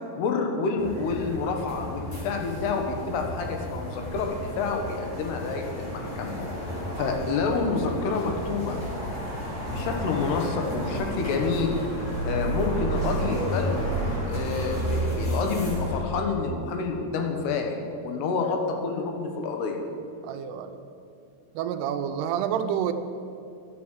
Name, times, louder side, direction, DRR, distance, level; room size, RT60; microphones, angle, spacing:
voice 1, 0.2-6.3 7.0-8.8 9.7-11.8 12.2-13.9 14.2-18.6 18.8-19.8, left 4 dB, 80° left, 3 dB, 3.3 m, -28 dB
sound 1, 0.8-16.0, right 1 dB, 40° left, 5.1 m, -31 dB
voice 2, 20.2-20.8 21.5-22.9, right 9 dB, 80° right, 8 dB, 2.7 m, -29 dB
12.0 x 9.5 x 7.4 m, 2.5 s
omnidirectional pair, 4.8 m